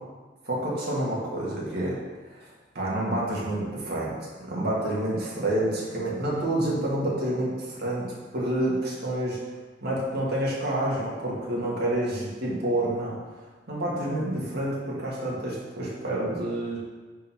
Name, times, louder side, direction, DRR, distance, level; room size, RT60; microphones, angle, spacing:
voice 1, 0.4-2.0 2.3-2.5 2.7-4.1 4.4-8.0 8.3-9.4 9.8-13.1 13.7-16.8, right 1 dB, 60° right, -5 dB, 1.6 m, -28 dB
5.3 x 3.7 x 5.5 m, 1.3 s
head